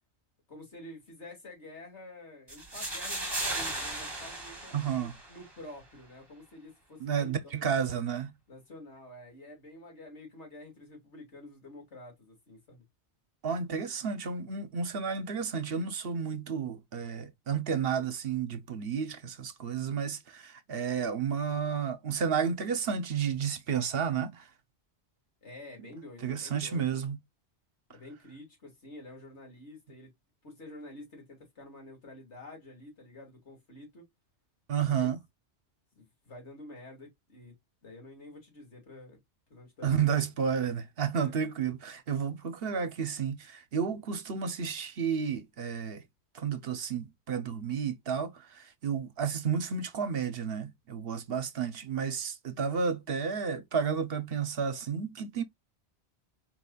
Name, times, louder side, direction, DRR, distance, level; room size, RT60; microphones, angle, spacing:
voice 1, 0.5-7.7 8.5-12.8 25.4-27.0 27.9-30.1 30.4-34.0 34.8-35.1 36.0-37.5 37.8-39.2 39.5-40.3 41.1-41.3, left 1 dB, 85° left, 2.9 m, -49 dB
sound 1, 2.5-5.5, right 2 dB, 20° right, 1.9 m, -36 dB
voice 2, 4.7-5.1 7.0-8.3 13.4-24.5 26.2-27.2 34.7-35.2 39.8-46.0 46.3-55.4, right 7 dB, 60° right, 1.0 m, -31 dB
4.6 x 4.0 x 2.3 m
omnidirectional pair, 1.1 m